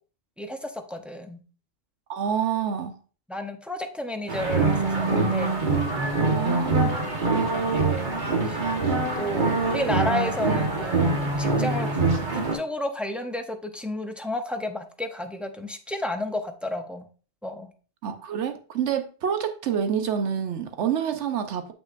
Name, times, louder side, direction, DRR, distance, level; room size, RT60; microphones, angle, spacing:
voice 1, 0.4-1.4 3.3-5.6 7.6-8.6 9.2-17.1 17.4-17.7, left 1 dB, ahead, 5 dB, 0.4 m, -32 dB
voice 2, 2.1-2.9 6.3-7.0 18.0-21.7, right 8 dB, 90° right, 8 dB, 1.0 m, -27 dB
sound 1, 4.3-12.6, right 3 dB, 45° right, 1.4 m, -24 dB
7.4 x 6.2 x 2.5 m, 0.38 s
omnidirectional pair, 1.1 m